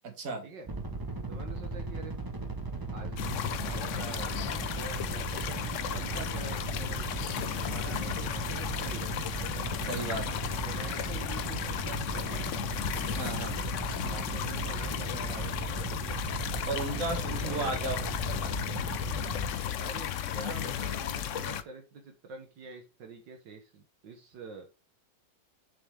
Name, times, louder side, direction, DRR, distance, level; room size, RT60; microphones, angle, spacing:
voice 1, 0.0-0.4 9.8-10.5 13.2-13.6 16.7-18.0 18.2-18.7, right 3 dB, 45° right, 2.0 m, -35 dB
sound 1, 0.7-19.5, right 2 dB, 20° right, 0.5 m, -37 dB
voice 2, 1.3-2.1 2.9-3.3 3.6-7.1 7.7-9.3 10.6-12.5 14.0-16.2 17.2-18.2 19.8-24.7, right 3 dB, 70° right, 1.9 m, -46 dB
sound 2, 3.2-21.6, left 9 dB, 75° left, 0.7 m, -35 dB
6.8 x 6.1 x 3.4 m
omnidirectional pair, 2.1 m